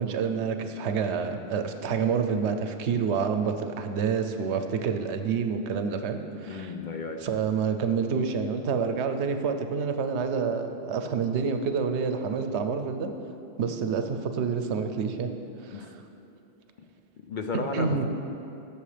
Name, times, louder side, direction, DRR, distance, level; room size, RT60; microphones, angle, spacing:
voice 1, 0.0-6.7 7.2-13.1 13.6-15.3 15.6-15.9 17.7-18.0, right 6 dB, 85° right, 7 dB, 0.9 m, -28 dB
voice 2, 6.5-7.2 15.7-15.9 17.3-18.0, left 4 dB, 55° left, 5 dB, 0.6 m, -33 dB
14.0 x 6.7 x 3.3 m, 2.8 s
omnidirectional pair, 1.1 m